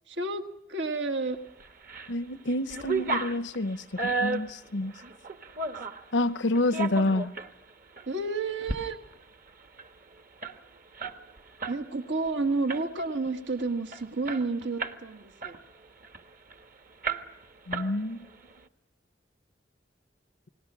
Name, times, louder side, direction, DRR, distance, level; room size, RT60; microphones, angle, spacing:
voice 1, 0.1-1.4 6.9-7.1 8.1-9.0 11.7-15.6, right 3 dB, 75° right, 6 dB, 1.6 m, -31 dB
sound 1, 1.6-2.1 2.5-6.0 6.5-7.5 8.0-8.1 8.5-8.8 9.1-9.2 9.5-11.8 12.1-12.3 12.7-13.1 13.6-13.7 13.9-15.0 15.4-16.6 17.0-17.4 17.7-18.3, right 3 dB, 50° right, 1.3 m, -33 dB
voice 2, 2.1-4.9 6.1-7.3 17.7-18.3, left 1 dB, 80° left, 14 dB, 0.8 m, -28 dB
29.0 x 20.0 x 6.1 m, 0.90 s
head